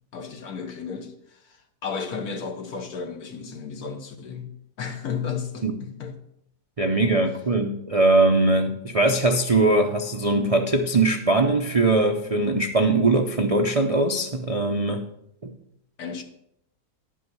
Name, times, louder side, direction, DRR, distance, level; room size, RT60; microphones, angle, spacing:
voice 1, 0.1-1.6 1.8-4.5 4.8-6.1 16.0-16.2, left 6 dB, 65° left, 1.6 m, -33 dB
voice 2, 6.8-15.1 15.4-15.5, right 2 dB, 50° right, 0.4 m, -21 dB
11.5 x 5.8 x 6.2 m
omnidirectional pair, 1.7 m